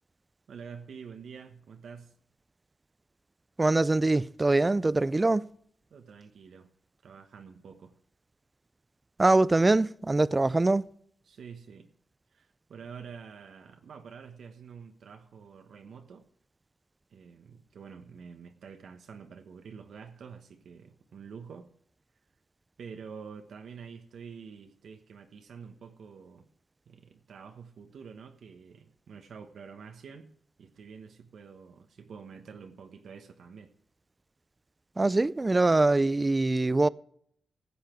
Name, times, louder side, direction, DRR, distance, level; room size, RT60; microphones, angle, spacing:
voice 1, 0.5-2.1 5.9-6.7 7.0-7.9 11.2-11.9 12.3-16.3 17.1-21.7 22.8-26.4 26.9-30.3 30.6-33.7, right 6 dB, 75° right, 1.2 m, -47 dB
voice 2, 3.6-5.4 9.2-10.8 35.0-36.9, right 2 dB, 20° right, 0.4 m, -23 dB
15.5 x 8.3 x 4.5 m
cardioid pair, 100°, 0 cm